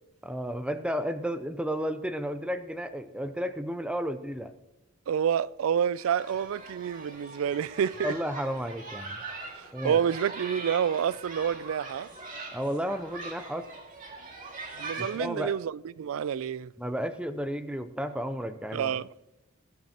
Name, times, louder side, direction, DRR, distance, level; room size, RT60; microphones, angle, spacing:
voice 1, 0.2-4.5 8.0-9.2 9.7-10.0 12.5-13.7 15.0-15.5 16.8-18.9, equal, 5° right, 0.5 m, -32 dB
voice 2, 5.1-8.1 9.5-12.1 14.8-16.7 18.7-19.1, right 8 dB, 75° right, 0.3 m, -28 dB
sound 1, 6.0-15.2, right 3 dB, 40° right, 2.2 m, -42 dB
20.0 x 12.5 x 2.9 m
head